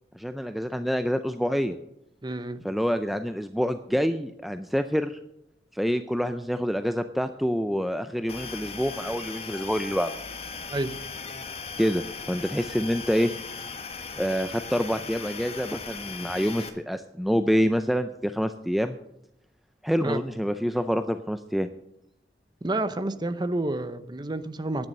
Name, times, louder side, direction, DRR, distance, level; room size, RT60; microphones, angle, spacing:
voice 1, 0.1-1.8 2.6-5.2 5.7-10.1 11.8-13.3 14.1-19.0 19.8-21.7, equal, ahead, 9 dB, 0.4 m, -27 dB
voice 2, 2.2-2.6 10.7-10.9 20.0-20.2 22.6-24.9, right 2 dB, 25° right, 12 dB, 0.7 m, -29 dB
sound 1, 8.3-16.7, left 5 dB, 35° left, 1.3 m, -38 dB
10.5 x 9.4 x 6.5 m, 0.82 s
head